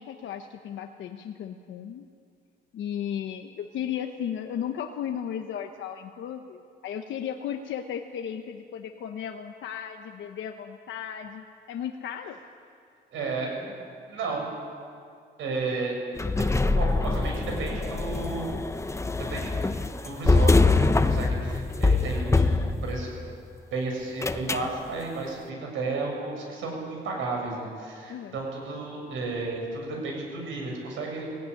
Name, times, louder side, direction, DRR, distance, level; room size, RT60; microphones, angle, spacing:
voice 1, 0.0-2.1 2.7-12.4 28.1-28.4, left 9 dB, 70° left, 5 dB, 1.1 m, -35 dB
voice 2, 13.1-13.8 14.1-14.5 15.4-16.0 16.8-18.5 19.3-19.6 20.0-23.2 23.7-31.2, right 3 dB, 85° right, 0 dB, 7.2 m, -33 dB
sound 1, 16.2-23.2 24.2-24.7, left 3 dB, 15° left, 0.9 m, -24 dB
18.0 x 17.5 x 9.9 m, 2.3 s
cardioid pair, 90°, 20 cm